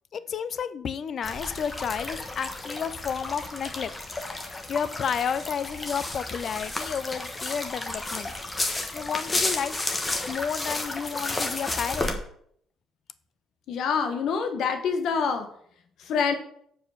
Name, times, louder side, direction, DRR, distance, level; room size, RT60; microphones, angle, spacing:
voice 1, 0.1-3.9 4.4-8.3 8.9-12.2, left 7 dB, 50° left, 15 dB, 0.6 m, -31 dB
sound 1, 1.2-12.1, left 2 dB, 20° left, 1.3 m, -32 dB
voice 2, 13.7-15.5 16.0-16.3, left 6 dB, 70° left, 7 dB, 1.3 m, -26 dB
6.7 x 4.9 x 6.6 m, 0.65 s
cardioid pair, 100°, 0 cm